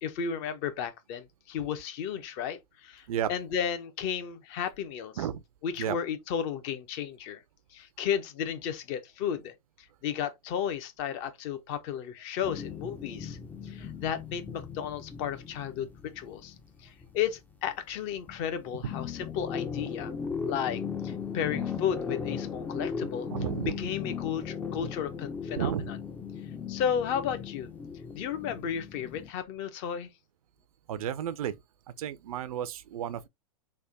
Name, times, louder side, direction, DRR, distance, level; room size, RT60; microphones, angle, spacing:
voice 1, 0.0-5.3 5.6-7.4 7.7-13.4 13.6-16.5 16.8-20.1 20.5-23.3 23.6-26.0 26.7-27.7 28.1-30.1, left 8 dB, 45° left, 0.8 m, -33 dB
sound 1, 12.4-18.0 18.3-29.3, left 6 dB, 10° left, 0.4 m, -37 dB
voice 2, 23.3-23.7 25.6-25.9 30.9-31.5 32.0-33.3, right 10 dB, 70° right, 0.4 m, -32 dB
3.4 x 2.2 x 3.8 m
hypercardioid pair, 110°, 19 cm